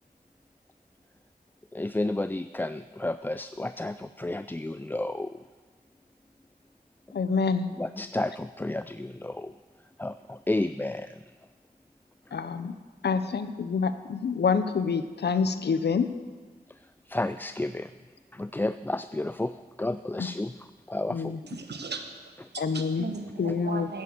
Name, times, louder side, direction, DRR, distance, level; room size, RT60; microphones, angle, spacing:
voice 1, 1.7-5.4 7.8-9.5 10.0-11.2 17.1-17.9 18.3-20.5 20.9-21.3, left 2 dB, 10° left, 12 dB, 0.3 m, -31 dB
voice 2, 7.1-7.7 12.3-12.7 13.0-16.1 20.2-20.3 21.1-21.4 22.6-23.1 23.4-23.9, left 5 dB, 85° left, 11 dB, 0.7 m, -27 dB
voice 3, 21.5-24.0, right 4 dB, 90° right, 6 dB, 1.1 m, -38 dB
9.6 x 9.5 x 7.8 m, 1.4 s
cardioid pair, 45°, 17 cm